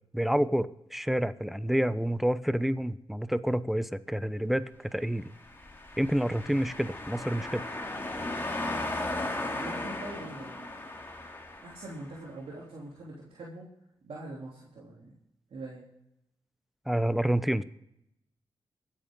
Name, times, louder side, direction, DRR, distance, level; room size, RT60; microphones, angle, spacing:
voice 1, 0.1-5.3 6.0-7.6 16.9-17.6, equal, ahead, 15 dB, 0.8 m, -28 dB
sound 1, 5.3-12.1, left 2 dB, 25° left, 2.8 m, -36 dB
voice 2, 9.5-10.7 11.6-13.7 14.0-15.1 15.5-15.8, right 2 dB, 70° right, -5 dB, 3.2 m, -43 dB
22.5 x 8.6 x 3.8 m, 0.83 s
cardioid pair, 50°, 10 cm